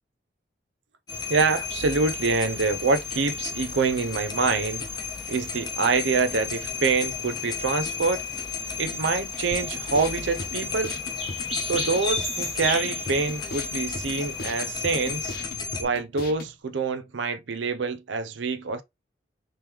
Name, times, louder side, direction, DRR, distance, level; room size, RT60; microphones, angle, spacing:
sound 1, 1.1-15.8, left 6 dB, 25° left, 0.6 m, -33 dB
sound 2, 1.1-15.4, equal, ahead, 1.1 m, -40 dB
voice 1, 1.3-4.9 5.3-8.2 8.8-11.0 11.7-15.4 15.8-18.8, right 4 dB, 80° right, 0.5 m, -26 dB
sound 3, 9.5-16.5, left 2 dB, 55° left, 0.8 m, -39 dB
3.5 x 3.0 x 3.0 m
head